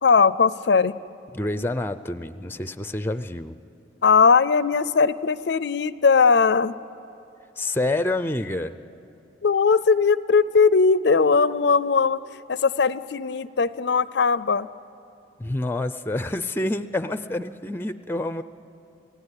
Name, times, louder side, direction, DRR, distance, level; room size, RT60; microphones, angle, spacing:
voice 1, 0.0-0.9 4.0-6.7 9.4-12.2 12.5-14.7, left 5 dB, 65° left, 17 dB, 0.5 m, -19 dB
voice 2, 1.3-3.6 7.6-8.7 15.4-18.4, left 2 dB, 10° left, 12 dB, 0.5 m, -27 dB
29.0 x 16.0 x 9.9 m, 2.7 s
head